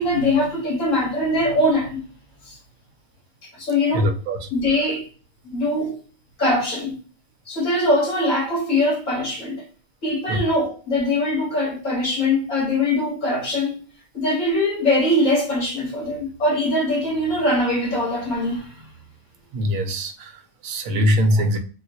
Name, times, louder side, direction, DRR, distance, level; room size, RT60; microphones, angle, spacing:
voice 1, 0.0-2.0 2.5-2.6 3.6-4.1 4.5-5.1 5.4-6.0 6.4-6.9 7.5-9.6 10.0-13.8 14.1-18.9, left 1 dB, 65° left, 1.8 m, -22 dB
voice 2, 3.9-4.5 10.3-10.4 19.5-21.6, equal, 80° right, 1.0 m, -22 dB
3.7 x 2.3 x 2.7 m
omnidirectional pair, 1.4 m